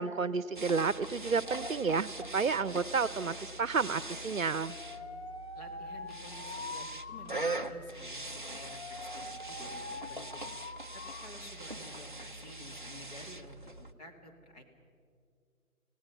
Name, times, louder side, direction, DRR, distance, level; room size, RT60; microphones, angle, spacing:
voice 1, 0.0-4.7, right 5 dB, 65° right, 17 dB, 0.8 m, -31 dB
sound 1, 0.5-13.9, right 2 dB, 35° right, 0.5 m, -42 dB
Alarm, 4.0-11.3 11.6-12.2, left 3 dB, 50° left, 1.3 m, -45 dB
voice 2, 5.5-10.4 10.9-14.6, left 1 dB, 25° left, 0 dB, 2.2 m, -52 dB
27.0 x 17.5 x 5.7 m, 2.2 s
figure-of-eight pair, 150°, 44 cm